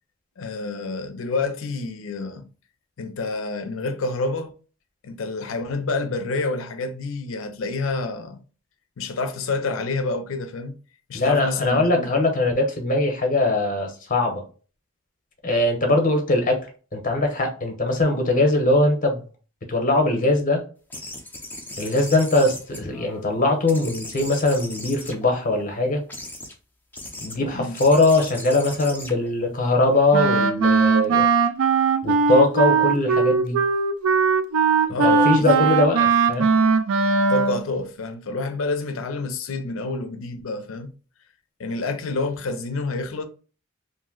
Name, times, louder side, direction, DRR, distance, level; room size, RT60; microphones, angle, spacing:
voice 1, 0.4-2.5 3.0-4.5 5.0-8.4 9.0-10.8 11.1-12.1 27.5-27.8 34.9-35.6 37.3-40.9 41.6-43.2, left 3 dB, 70° left, 0.5 m, -28 dB
voice 2, 11.1-14.4 15.4-16.7 16.9-19.2 19.7-20.6 21.8-26.0 27.2-31.3 32.0-33.6 35.0-36.5, left 2 dB, 40° left, 0.8 m, -21 dB
Tape squeak, 20.9-23.3 23.7-25.6 26.1-26.5 26.9-27.4 27.7-30.2, left 1 dB, 10° left, 0.5 m, -38 dB
Wind instrument woodwind instrument, 30.1-37.7, right 5 dB, 75° right, 0.3 m, -19 dB
2.6 x 2.1 x 3.7 m
head